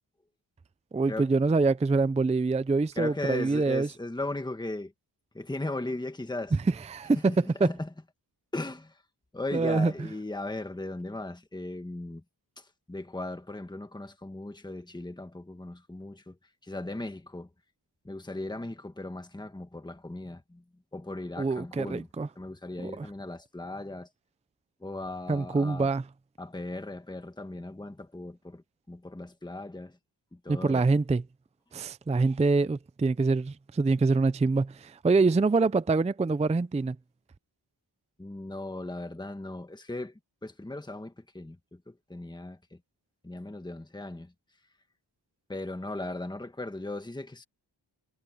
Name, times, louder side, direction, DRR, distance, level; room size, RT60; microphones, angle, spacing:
voice 1, 0.9-3.9 6.9-7.7 9.5-9.9 21.4-22.3 22.8-23.1 25.3-26.0 30.5-31.2 31.7-37.0, right 3 dB, 15° right, 0.4 m, -25 dB
voice 2, 3.0-4.9 5.3-6.6 7.6-7.9 8.5-9.0 9.3-12.2 12.6-16.4 16.6-17.5 18.0-20.6 20.9-22.1 22.3-24.1 24.8-25.9 26.4-30.0 30.3-30.8 38.2-42.8 43.2-44.3 45.5-47.4, left 2 dB, 10° left, 1.5 m, -37 dB
wide cardioid pair, 120°, 44 cm